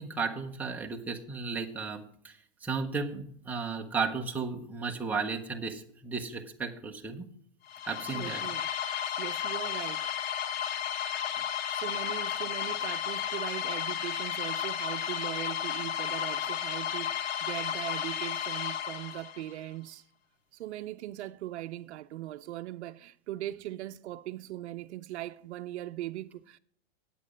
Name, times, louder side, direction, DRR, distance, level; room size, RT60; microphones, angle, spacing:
voice 1, 0.0-7.3 7.8-8.4, right 4 dB, 5° right, 0.6 m, -34 dB
sound 1, 7.7-19.5, left 9 dB, 65° left, 0.9 m, -33 dB
voice 2, 8.1-8.7 9.2-10.1 11.4-11.5 11.7-20.0 20.6-26.6, right 14 dB, 85° right, 0.6 m, -40 dB
9.8 x 8.4 x 5.0 m
supercardioid pair, 155°, 33 cm